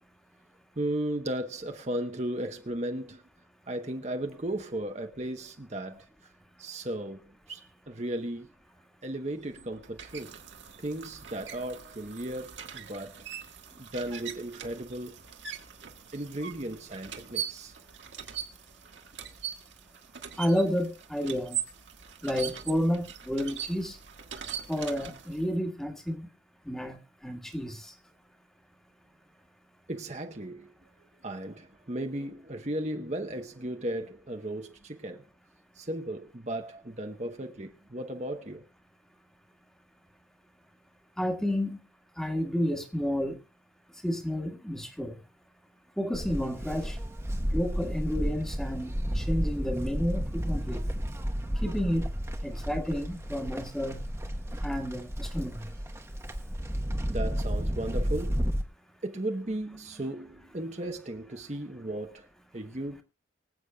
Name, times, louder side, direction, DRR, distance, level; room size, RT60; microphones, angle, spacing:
voice 1, 0.8-3.2 3.7-6.3 6.6-8.5 9.0-10.4 10.8-13.3 13.8-15.2 16.1-17.8 29.9-35.2 35.7-38.7 57.1-58.5 59.0-62.3 62.5-63.0, right 1 dB, 35° right, 1.0 m, -36 dB
sound 1, 9.3-25.5, right 9 dB, 70° right, 1.6 m, -41 dB
voice 2, 20.4-21.6 22.2-24.0 24.7-26.3 26.6-27.9 41.2-41.8 42.2-43.4 44.0-45.2 46.0-47.0 47.5-50.8 51.6-52.0 52.4-54.0 54.6-55.7, equal, 5° left, 1.6 m, -31 dB
Livestock farm animals working animals, 46.1-58.6, equal, 15° right, 1.0 m, -32 dB
24.5 x 8.2 x 2.3 m
head